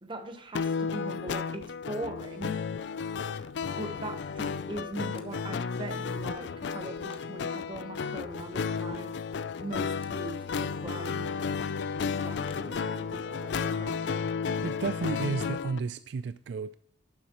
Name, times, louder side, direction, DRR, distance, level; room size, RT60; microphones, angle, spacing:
voice 1, 0.0-2.6 3.7-9.1 9.6-11.3 12.2-14.3, right 1 dB, 25° right, 6 dB, 1.0 m, -41 dB
sound 1, 0.5-15.8, left 5 dB, 65° left, 0.4 m, -33 dB
sound 2, 5.1-5.7 6.0-7.4 9.9-10.2 12.4-12.7, left 4 dB, 30° left, 0.8 m, -54 dB
voice 2, 14.6-16.7, right 5 dB, 65° right, 14 dB, 0.3 m, -32 dB
11.5 x 7.1 x 3.0 m, 0.69 s
head